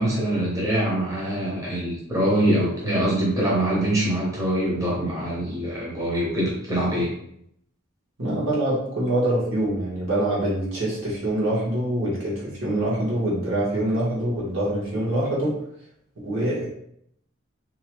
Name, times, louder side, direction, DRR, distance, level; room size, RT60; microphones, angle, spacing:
voice 1, 0.0-7.1, right 1 dB, 15° right, -6 dB, 0.6 m, -24 dB
voice 2, 8.2-15.5 16.2-16.7, right 1 dB, 70° right, -6 dB, 1.2 m, -25 dB
2.7 x 2.2 x 2.9 m, 0.72 s
head